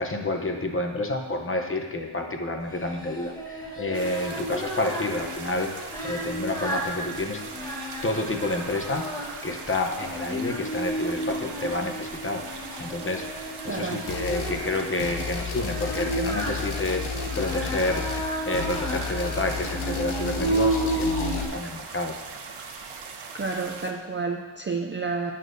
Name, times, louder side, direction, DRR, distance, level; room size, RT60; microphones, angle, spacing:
voice 1, 0.0-5.7 6.0-7.4 8.0-9.1 9.4-17.0 17.4-22.2, left 2 dB, 25° left, 3 dB, 0.8 m, -29 dB
Singing, 2.7-21.4, right 1 dB, 5° left, 1.3 m, -33 dB
sound 1, 3.9-23.9, right 5 dB, 85° right, 1.0 m, -41 dB
voice 2, 13.7-14.0 23.3-25.3, right 4 dB, 25° right, 2 dB, 0.4 m, -30 dB
sound 2, 14.1-14.6 15.0-21.5, left 6 dB, 70° left, 1.0 m, -33 dB
17.0 x 6.7 x 2.6 m, 1.4 s
wide cardioid pair, 160°, 50 cm